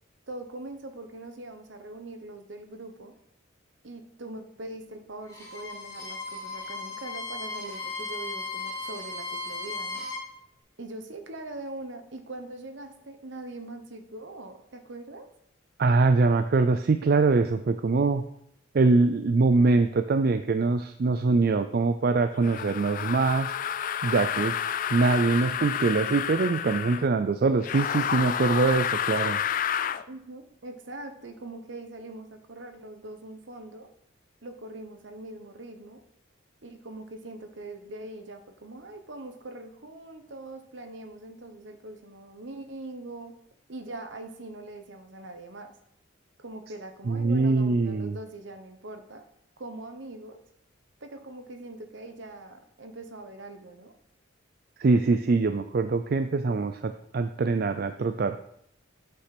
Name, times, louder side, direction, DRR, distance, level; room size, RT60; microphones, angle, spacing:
voice 1, 0.3-3.1 3.8-10.1 10.8-15.3 30.1-33.9 34.4-36.0 36.6-43.4 43.7-45.7 46.4-49.2 49.6-50.4 51.0-53.9, right 2 dB, 65° right, 7 dB, 1.1 m, -42 dB
Bowed string instrument, 5.2-10.3, left 3 dB, 15° left, 2.0 m, -36 dB
voice 2, 15.8-18.2 18.7-23.5 24.0-24.5 24.9-29.4 47.1-48.2 54.8-58.4, right 3 dB, 50° right, 9 dB, 0.4 m, -23 dB
sound 1, 22.4-27.1 27.6-30.0, left 9 dB, 40° left, 0.3 m, -30 dB
8.4 x 5.8 x 6.0 m, 0.73 s
head